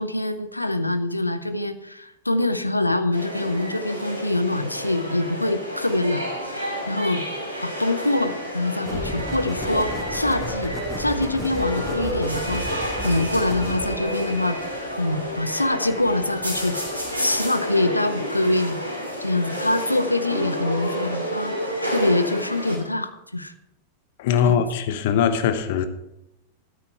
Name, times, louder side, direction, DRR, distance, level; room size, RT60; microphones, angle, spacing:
voice 1, 0.0-6.6 6.9-7.3 7.6-14.6 15.0-16.8 17.2-18.8 19.2-23.5 24.4-24.6, left 2 dB, 85° left, 0.6 m, -24 dB
sound 1, 3.1-22.8, equal, 85° right, 3.0 m, -30 dB
sound 2, 8.9-17.4, right 1 dB, 5° right, 2.1 m, -35 dB
voice 2, 24.2-25.9, left 8 dB, 50° left, 1.1 m, -21 dB
13.0 x 9.6 x 4.5 m
figure-of-eight pair, 90°, 0 cm